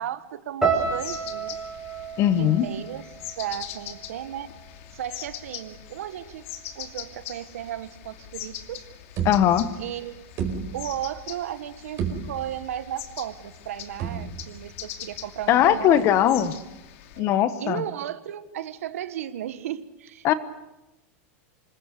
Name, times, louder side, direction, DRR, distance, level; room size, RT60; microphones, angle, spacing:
voice 1, 0.0-1.6 2.4-3.0 3.4-4.5 4.9-6.4 6.7-8.9 9.8-16.1 17.2-20.3, right 11 dB, 90° right, 12 dB, 1.5 m, -35 dB
sound 1, 0.6-4.8 5.1-5.9 6.4-6.7, right 5 dB, 5° right, 6.3 m, -32 dB
sound 2, 0.8-17.2, left 11 dB, 70° left, 2.6 m, -42 dB
voice 2, 2.2-2.7 9.2-9.7 15.5-16.5 17.2-17.8 20.2-20.3, left 11 dB, 40° left, 13 dB, 1.3 m, -20 dB
sound 3, 8.6-8.7 9.2-9.9 10.4-11.2 11.6-11.7 12.0-12.7 14.0-14.6, right 6 dB, 40° right, 4.9 m, -32 dB
26.5 x 21.0 x 6.8 m, 0.96 s
supercardioid pair, 140°, 8 cm